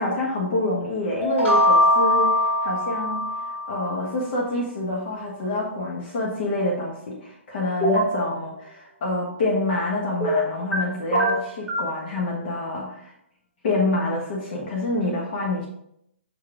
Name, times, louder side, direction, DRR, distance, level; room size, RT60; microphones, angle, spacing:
voice 1, 0.0-3.2 3.7-13.1 13.6-15.7, left 2 dB, 50° left, -2 dB, 1.5 m, -27 dB
sound 1, 1.2-4.0, left 1 dB, 20° left, 2.4 m, -21 dB
sound 2, 7.8-8.2 10.2-10.8 11.1-11.9, right 1 dB, ahead, 1.7 m, -22 dB
6.3 x 4.8 x 3.7 m, 0.74 s
figure-of-eight pair, 130°, 7 cm